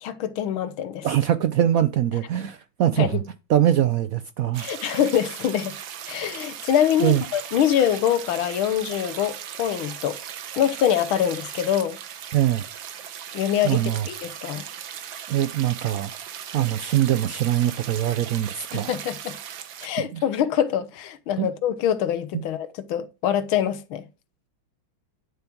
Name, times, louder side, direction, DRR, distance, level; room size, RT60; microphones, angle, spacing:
voice 1, 0.0-1.1 2.3-2.4 3.0-3.2 4.6-5.7 6.1-10.2 10.6-12.0 13.3-14.6 18.7-19.3 19.8-24.0, left 9 dB, 80° left, 1.7 m, -24 dB
voice 2, 1.0-3.2 3.5-4.7 7.0-7.2 12.3-12.6 13.6-14.0 15.3-16.1 16.5-19.0 20.1-20.2 21.4-21.5, right 11 dB, 85° right, 0.7 m, -22 dB
sound 1, 4.5-19.9, right 9 dB, 70° right, 1.7 m, -38 dB
10.5 x 7.0 x 4.5 m
omnidirectional pair, 2.2 m